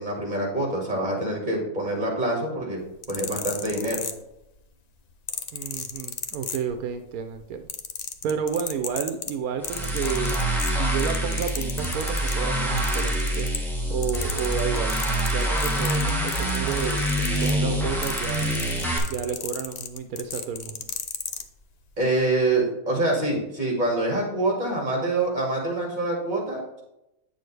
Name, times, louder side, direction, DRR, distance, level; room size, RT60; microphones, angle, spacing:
voice 1, 0.0-2.8 3.1-4.0 22.0-26.8, right 2 dB, 30° right, -1 dB, 2.2 m, -25 dB
sound 1, 2.9-4.6 5.3-7.0 7.3-12.4 12.8-13.8 14.0-21.5 22.2-22.4, left 6 dB, 80° left, 0.3 m, -34 dB
voice 2, 5.5-7.6 8.2-10.4 10.7-13.5 13.9-15.0 15.3-18.5 19.1-20.8, right 7 dB, 85° right, 7 dB, 1.1 m, -31 dB
sound 2, 9.6-19.0, right 1 dB, ahead, 1.2 m, -26 dB
9.1 x 6.4 x 3.3 m, 0.87 s
omnidirectional pair, 1.5 m